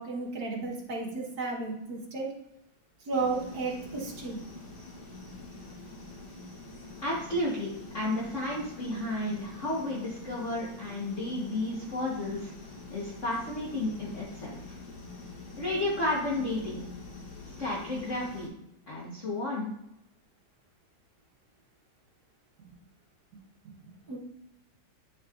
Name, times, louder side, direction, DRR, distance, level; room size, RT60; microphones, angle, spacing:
voice 1, 0.0-2.3 3.1-4.4 23.6-24.2, right 3 dB, 55° right, -1 dB, 1.6 m, -33 dB
sound 1, 3.1-18.5, left 3 dB, 85° left, 2.8 m, -46 dB
voice 2, 7.0-12.5 12.9-14.5 15.6-16.8 17.6-18.5 18.9-19.7, left 1 dB, 40° left, -5 dB, 1.4 m, -32 dB
9.6 x 6.3 x 2.5 m, 0.82 s
omnidirectional pair, 2.2 m